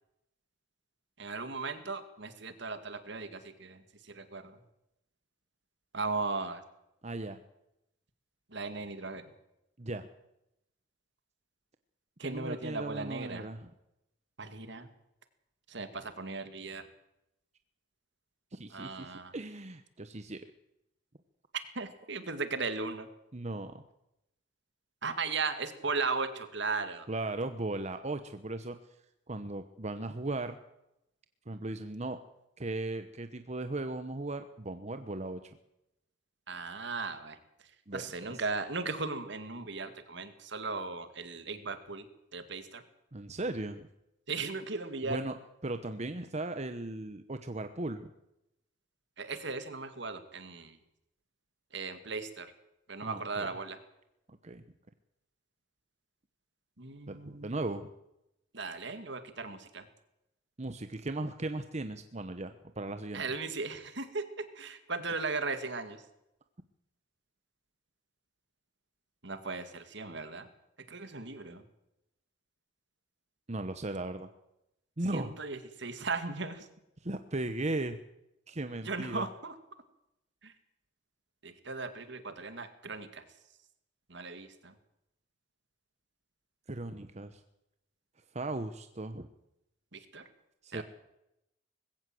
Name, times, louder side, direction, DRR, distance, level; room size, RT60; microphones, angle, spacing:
voice 1, 1.2-3.8 4.1-4.6 5.9-6.6 8.5-9.2 12.2-13.5 14.4-14.9 15.7-16.9 18.7-19.3 21.8-23.1 25.0-27.1 36.5-37.4 37.9-42.0 42.3-42.8 44.3-45.2 49.2-50.8 51.7-52.5 52.9-53.8 56.8-57.5 58.5-59.9 63.1-66.0 69.2-70.5 70.9-71.6 75.1-76.7 78.8-79.5 80.4-80.5 81.4-83.2 84.1-84.7 89.9-90.2 90.7-90.8, right 4 dB, 65° right, 10 dB, 2.3 m, -37 dB
voice 2, 7.0-7.4 9.8-10.1 12.2-13.7 18.5-20.4 23.3-23.8 27.1-29.0 29.3-30.6 31.5-32.2 32.6-35.6 37.9-38.5 43.1-43.9 45.0-45.4 45.6-48.1 53.0-53.5 54.3-54.6 57.1-57.9 60.6-63.2 73.5-74.3 75.0-75.3 77.0-78.0 78.5-79.3 86.7-87.4 88.3-89.3 90.6-90.8, right 2 dB, 35° right, 9 dB, 1.0 m, -37 dB
20.5 x 16.5 x 7.8 m, 0.85 s
head